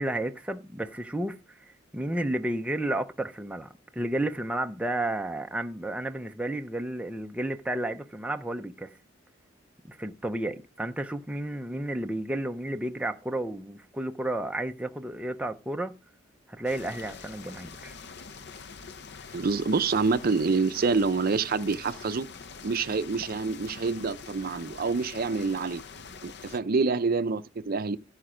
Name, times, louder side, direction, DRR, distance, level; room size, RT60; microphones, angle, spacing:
voice 1, 0.0-9.0 9.8-16.0 16.5-18.0, right 1 dB, 5° right, 0.6 m, -32 dB
sound 1, 16.6-26.6, left 5 dB, 60° left, 0.7 m, -45 dB
voice 2, 19.3-22.3 22.6-25.8 26.2-28.0, right 4 dB, 50° right, 0.5 m, -27 dB
14.5 x 5.0 x 4.9 m
head